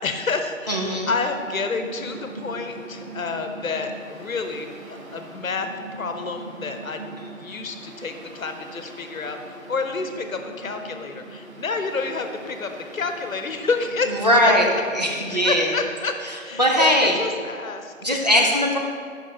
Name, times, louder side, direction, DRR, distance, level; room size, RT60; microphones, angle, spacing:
voice 1, 0.0-14.5 15.3-16.2 16.4-18.2, left 4 dB, 80° left, 6 dB, 0.8 m, -29 dB
voice 2, 0.7-1.1 14.1-14.7 14.9-15.7 16.2-17.2 18.0-18.8, equal, 30° right, -2 dB, 0.5 m, -20 dB
Mechanical fan, 0.8-15.6, right 2 dB, 85° right, 1.2 m, -41 dB
5.4 x 4.7 x 5.4 m, 2.1 s
figure-of-eight pair, 160°, 40 cm